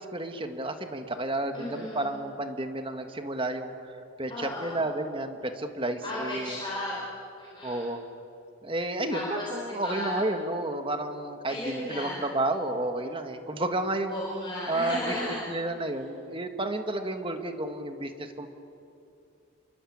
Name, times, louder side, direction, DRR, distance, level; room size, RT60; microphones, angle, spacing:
voice 1, 0.0-6.6 7.6-8.0 8.6-14.2 14.7-15.2 15.5-18.5, right 2 dB, 25° right, 6 dB, 1.6 m, -31 dB
voice 2, 1.5-2.1 4.3-4.8 6.0-6.9 7.4-7.8 9.1-10.2 11.5-12.1 14.1-15.4, left 1 dB, 20° left, -5 dB, 4.6 m, -35 dB
29.5 x 23.0 x 8.7 m, 2.7 s
head